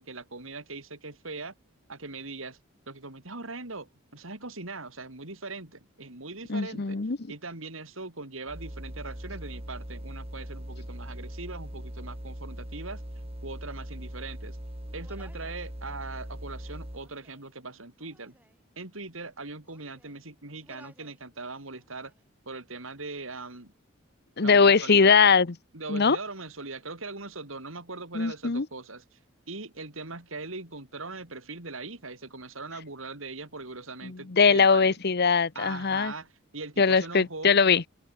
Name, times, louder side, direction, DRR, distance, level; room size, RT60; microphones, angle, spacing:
voice 1, 0.0-1.5 1.9-2.6 2.9-7.0 7.3-14.6 14.9-18.4 18.8-22.1 22.5-23.7 24.4-25.1 25.7-29.0 29.5-35.0 35.6-37.6, right 3 dB, 70° right, 3.9 m, -40 dB
voice 2, 6.5-7.2 24.4-25.5 25.9-26.2 28.1-28.7 34.0-36.1 36.8-37.8, left 5 dB, 50° left, 0.9 m, -21 dB
sound 1, 8.5-17.2, equal, 30° right, 2.8 m, -40 dB
Human voice, 14.9-15.7 16.6-17.5 18.0-18.6 19.3-20.2 20.6-21.2 21.6-22.3, right 1 dB, 10° right, 6.9 m, -59 dB
open air
head